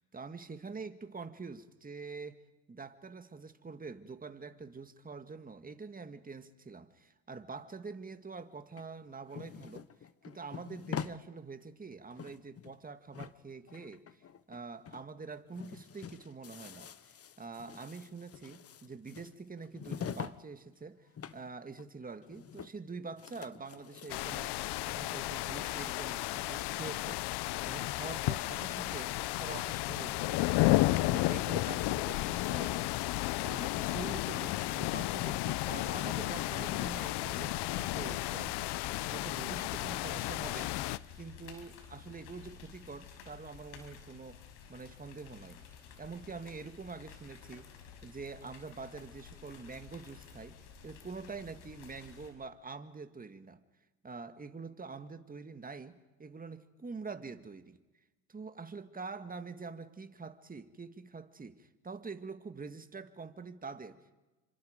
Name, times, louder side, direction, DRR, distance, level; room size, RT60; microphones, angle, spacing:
voice 1, 0.0-2.4 2.7-9.9 10.3-14.2 14.5-24.5 24.8-27.2 27.6-30.6 31.0-33.1 33.4-40.8 41.2-44.4 44.7-45.6 46.0-47.7 48.0-53.6 54.0-57.8 58.3-64.2, right 4 dB, 20° right, 9 dB, 1.8 m, -45 dB
sound 1, 8.8-11.2 11.6-11.7 12.0-12.9 13.1-14.6 14.8-15.0 15.3-20.4 20.7-21.5 21.8-21.9 22.2-22.9 23.2-25.5, left 7 dB, 30° left, 1.0 m, -45 dB
sound 2, 24.1-41.0, left 18 dB, 60° left, 0.7 m, -33 dB
sound 3, 35.9-52.3, left 7 dB, 80° left, 5.2 m, -53 dB
29.0 x 26.0 x 5.2 m, 1.1 s
supercardioid pair, 90°, 46 cm